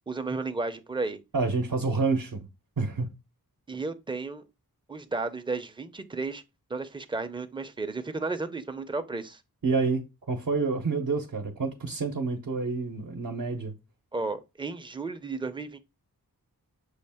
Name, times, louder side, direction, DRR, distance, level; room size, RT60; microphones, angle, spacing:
voice 1, 0.1-1.2 3.7-4.4 4.9-6.4 6.7-9.4 14.1-15.8, right 3 dB, 15° right, 0.5 m, -33 dB
voice 2, 1.3-2.5 2.8-3.1 9.6-13.7, right 4 dB, 55° right, 0.8 m, -28 dB
6.4 x 2.4 x 3.4 m
wide cardioid pair, 60°, 37 cm